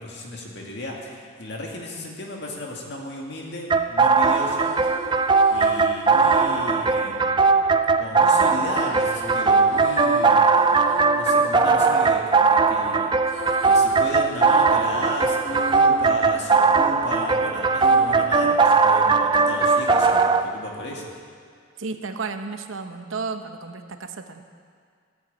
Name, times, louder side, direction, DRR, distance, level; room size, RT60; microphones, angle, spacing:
voice 1, 0.0-4.9 5.5-7.7 8.0-21.2, left 1 dB, 55° left, -1 dB, 2.2 m, -35 dB
sound 1, 3.7-20.4, right 4 dB, 20° right, 0.4 m, -19 dB
sound 2, 4.2-8.2 8.7-12.8 13.1-17.3 17.8-19.3, left 2 dB, 70° left, 1.2 m, -37 dB
voice 2, 21.8-24.4, right 4 dB, 75° right, 7 dB, 0.9 m, -33 dB
13.0 x 8.9 x 8.7 m, 2.1 s
head